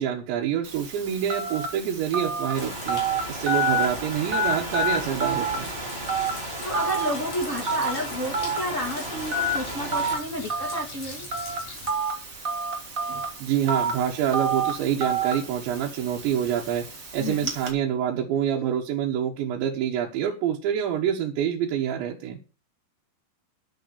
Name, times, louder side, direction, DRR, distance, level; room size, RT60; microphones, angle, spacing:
voice 1, 0.0-3.0 3.3-5.7 13.1-16.9 17.1-22.4, right 9 dB, 85° right, -1 dB, 3.5 m, -27 dB
Telephone, 0.6-17.7, right 3 dB, 35° right, 1.2 m, -30 dB
sound 1, 2.5-11.9, left 3 dB, 55° left, 5.7 m, -43 dB
sound 2, 2.5-10.2, right 1 dB, 15° right, 4.1 m, -35 dB
voice 2, 6.6-11.3 17.2-17.5, equal, 25° left, -1 dB, 2.1 m, -31 dB
10.5 x 6.6 x 6.8 m, 0.34 s
omnidirectional pair, 5.1 m